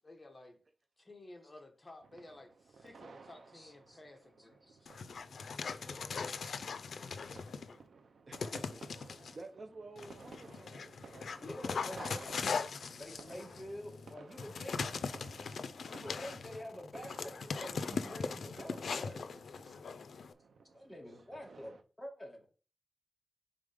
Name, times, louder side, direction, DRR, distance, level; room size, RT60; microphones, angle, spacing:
voice 1, 0.0-0.6 1.0-5.0 5.5-6.5 6.9-7.9 11.4-12.4 13.0-13.1, left 2 dB, 25° left, 1.2 m, -56 dB
sound 1, 2.0-21.8, right 4 dB, 80° right, 0.6 m, -56 dB
voice 2, 3.5-4.0 4.6-4.8 10.6-10.8 11.4-14.8 15.9-19.8 20.7-21.7 22.0-22.5, equal, 5° left, 1.7 m, -48 dB
Dog, 4.9-7.8 8.3-9.3 10.0-20.3, left 5 dB, 85° left, 0.4 m, -40 dB
voice 3, 8.3-8.8 9.1-10.9, right 3 dB, 45° right, 0.7 m, -50 dB
5.0 x 3.8 x 5.0 m
wide cardioid pair, 115°, 0 cm